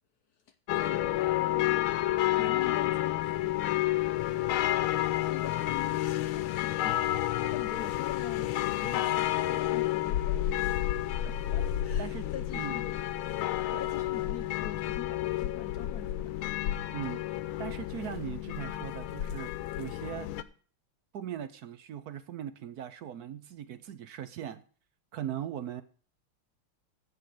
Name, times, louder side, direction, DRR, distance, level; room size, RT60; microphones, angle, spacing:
sound 1, 0.7-20.4, left 14 dB, 75° left, 1.5 m, -30 dB
voice 1, 0.7-1.9 2.4-4.1 5.0-7.0 7.4-8.5 8.8-10.8 11.2-13.0 13.8-16.3, left 8 dB, 60° left, 9 dB, 1.1 m, -44 dB
voice 2, 12.0-13.0 13.7-13.9 16.9-17.2 17.6-19.5 19.8-20.3 21.1-24.6 25.1-25.8, right 10 dB, 65° right, 12 dB, 0.9 m, -39 dB
15.0 x 5.0 x 7.7 m, 0.42 s
omnidirectional pair, 2.3 m